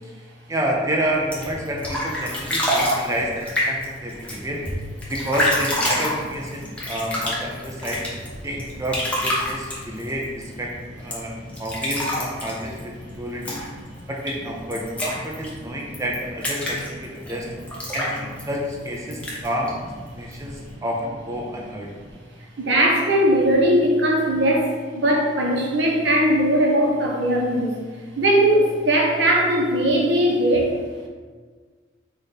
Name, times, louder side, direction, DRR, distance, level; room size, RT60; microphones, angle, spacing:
voice 1, 0.5-4.6 5.1-8.0 8.4-10.7 11.0-11.3 11.6-13.6 14.1-17.5 17.9-19.7 20.1-21.9, equal, 15° right, -2 dB, 0.5 m, -29 dB
sound 1, 1.1-20.7, left 1 dB, 5° left, 0.9 m, -29 dB
voice 2, 22.6-27.7 28.2-30.7, right 1 dB, 75° right, -2 dB, 0.9 m, -19 dB
5.1 x 2.5 x 4.1 m, 1.5 s
head